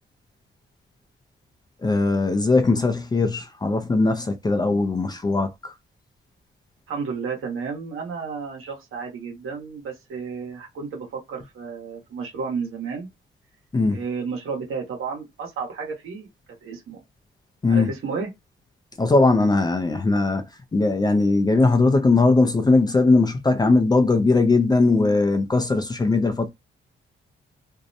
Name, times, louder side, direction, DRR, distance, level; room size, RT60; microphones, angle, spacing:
voice 1, 1.8-5.7 13.7-14.0 17.6-17.9 19.0-20.4 20.7-26.5, left 3 dB, 20° left, 0.4 m, -19 dB
voice 2, 6.9-13.1 13.9-16.3 16.6-17.0 17.7-18.3, right 5 dB, 80° right, 1.1 m, -32 dB
2.6 x 2.1 x 2.6 m
cardioid pair, 110°, 21 cm